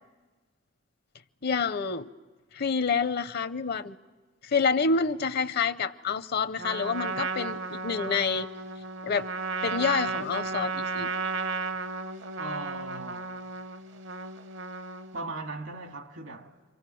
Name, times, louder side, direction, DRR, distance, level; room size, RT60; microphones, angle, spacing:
voice 1, 1.4-2.1 2.5-4.0 4.4-8.5 9.0-9.3 9.6-11.1, left 5 dB, 55° left, 0.7 m, -28 dB
Trumpet, 6.6-15.3, right 4 dB, 60° right, 0.9 m, -34 dB
voice 2, 12.4-13.3 15.1-16.6, right 2 dB, 85° right, 2.2 m, -38 dB
28.5 x 24.0 x 7.8 m
head